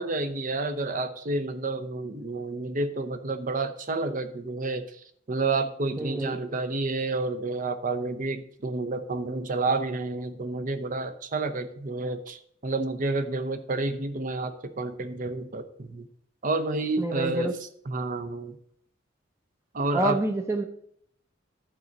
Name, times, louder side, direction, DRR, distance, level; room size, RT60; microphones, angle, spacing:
voice 1, 0.0-5.0 5.3-16.1 16.4-17.5 17.9-18.6 19.7-20.2, right 3 dB, 45° right, 9 dB, 0.8 m, -30 dB
voice 2, 6.0-6.4 17.0-17.5 19.9-20.6, right 1 dB, 15° right, 5 dB, 0.7 m, -27 dB
11.5 x 4.0 x 6.4 m, 0.67 s
head